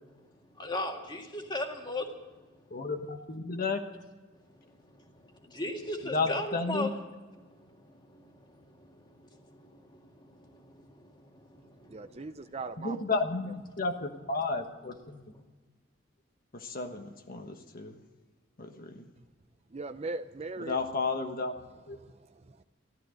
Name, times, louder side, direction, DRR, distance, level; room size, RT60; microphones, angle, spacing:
voice 1, 0.5-2.1 4.7-7.0 7.3-12.3, left 1 dB, 25° left, 3 dB, 2.0 m, -39 dB
voice 2, 2.7-3.8 6.1-6.9 12.8-15.2 16.5-17.9 18.6-19.1 20.7-21.5 21.9-22.0, left 3 dB, 50° left, 5 dB, 1.3 m, -32 dB
voice 3, 11.9-13.0 19.7-20.8 22.0-22.6, right 3 dB, 35° right, 11 dB, 0.6 m, -39 dB
14.5 x 13.0 x 6.4 m, 1.3 s
head